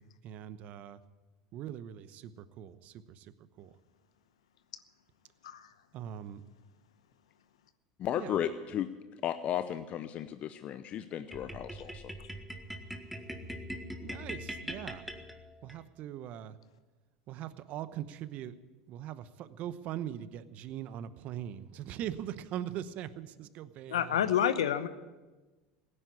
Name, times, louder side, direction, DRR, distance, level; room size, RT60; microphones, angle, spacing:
voice 1, 0.2-1.0 1.5-3.3 3.6-3.7 5.9-6.4 8.2-8.3 14.0-15.0 15.6-16.5 17.3-18.5 18.9-24.2, right 11 dB, 55° right, 14 dB, 0.9 m, -41 dB
voice 2, 8.0-8.9 9.2-12.1, left 10 dB, 45° left, 10 dB, 0.7 m, -34 dB
sound 1, 11.3-15.8, equal, ahead, 1.7 m, -42 dB
voice 3, 23.9-24.9, left 9 dB, 85° left, 13 dB, 0.9 m, -28 dB
17.0 x 10.0 x 8.3 m, 1.2 s
hypercardioid pair, 85°, 3 cm